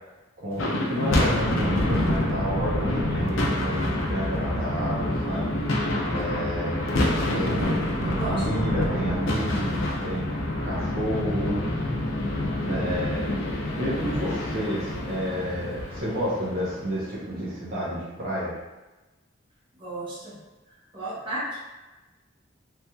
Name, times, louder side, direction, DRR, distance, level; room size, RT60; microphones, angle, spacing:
voice 1, 0.4-5.5 6.1-6.8 7.2-10.3 10.6-11.6 12.6-13.3 13.7-18.5, equal, 50° right, -7 dB, 0.7 m, -30 dB
sound 1, 0.5-16.9, left 1 dB, 80° left, 0.6 m, -27 dB
voice 2, 8.0-9.0 19.8-20.4 20.9-21.6, right 1 dB, 25° right, -8 dB, 0.9 m, -35 dB
3.2 x 2.8 x 2.2 m, 1.1 s
head